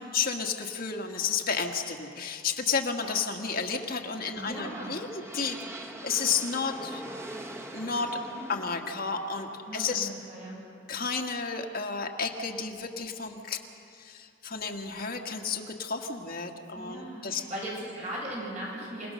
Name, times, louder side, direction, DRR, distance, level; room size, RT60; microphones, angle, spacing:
voice 1, 0.0-5.6 5.8-7.0 7.7-8.2 8.5-10.1 10.9-13.6 14.0-17.5, left 5 dB, 50° left, 2 dB, 1.7 m, -32 dB
sound 1, 3.8-11.6, right 1 dB, 15° right, 1.2 m, -44 dB
voice 2, 4.4-5.0 8.2-8.4 9.7-10.6 16.7-19.1, right 1 dB, 35° right, -4 dB, 7.6 m, -38 dB
29.0 x 18.5 x 6.5 m, 2.5 s
head